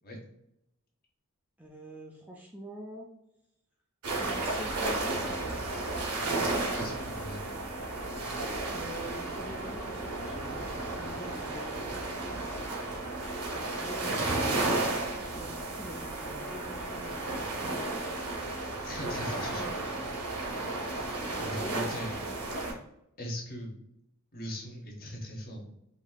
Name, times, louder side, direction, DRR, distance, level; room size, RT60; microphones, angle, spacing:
voice 1, 1.6-3.1 4.2-6.2 8.7-10.7 10.9-12.4 13.5-14.9 15.3-18.1 21.2-21.9 22.3-22.8, equal, 5° right, -2 dB, 0.4 m, -46 dB
sound 1, 4.0-22.7, right 2 dB, 90° right, 1.1 m, -33 dB
voice 2, 6.7-7.6 12.9-13.0 18.8-19.8 21.4-22.1 23.2-23.8 24.3-25.7, equal, 40° left, -1 dB, 1.0 m, -39 dB
5.1 x 2.7 x 2.2 m, 0.83 s
head